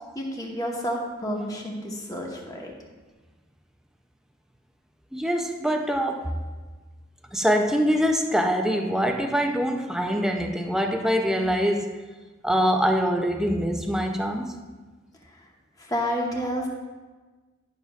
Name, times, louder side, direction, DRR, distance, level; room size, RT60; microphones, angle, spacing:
voice 1, 0.1-2.7 15.8-16.7, equal, 20° left, -1 dB, 1.0 m, -30 dB
voice 2, 5.1-6.4 7.3-12.0 12.4-14.6, equal, 5° right, 4 dB, 0.3 m, -24 dB
11.5 x 6.0 x 2.3 m, 1.3 s
head